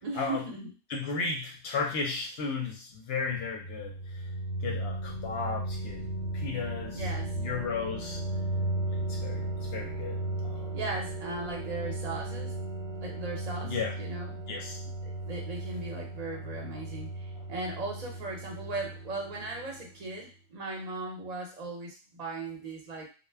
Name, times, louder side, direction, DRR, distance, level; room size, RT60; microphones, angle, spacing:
voice 1, 0.0-0.7 6.9-7.4 10.7-12.5 13.0-14.4 15.2-23.1, right 2 dB, 40° right, -1 dB, 0.7 m, -38 dB
voice 2, 0.9-3.9 4.6-6.0 6.3-7.1 7.4-8.2 8.9-10.7 13.6-13.9 14.5-14.8, left 4 dB, 65° left, 0 dB, 0.7 m, -34 dB
sound 1, 3.2-19.9, right 1 dB, 70° right, 0.9 m, -36 dB
2.1 x 2.1 x 3.3 m, 0.34 s
omnidirectional pair, 1.3 m